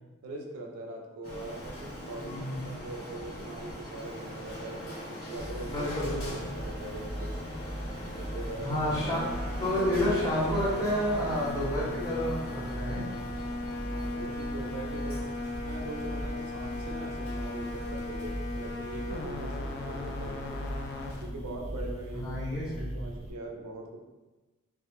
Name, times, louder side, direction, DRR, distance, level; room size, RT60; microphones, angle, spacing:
voice 1, 0.2-5.9 6.3-7.4 8.1-8.7 9.5-9.7 13.9-20.6 21.2-22.4 22.7-24.0, right 2 dB, 85° right, 0 dB, 0.4 m, -42 dB
Printer, 1.2-18.9, equal, 70° left, 0.8 m, -43 dB
voice 2, 2.2-2.7 5.6-6.4 8.6-9.3 9.6-13.0 22.2-22.9, left 1 dB, 15° left, -8 dB, 0.7 m, -30 dB
sound 1, 5.4-23.3, equal, 30° right, 0.4 m, -40 dB
sound 2, 6.0-23.2, left 1 dB, 50° left, 0.3 m, -39 dB
2.1 x 2.0 x 2.9 m, 1.2 s
head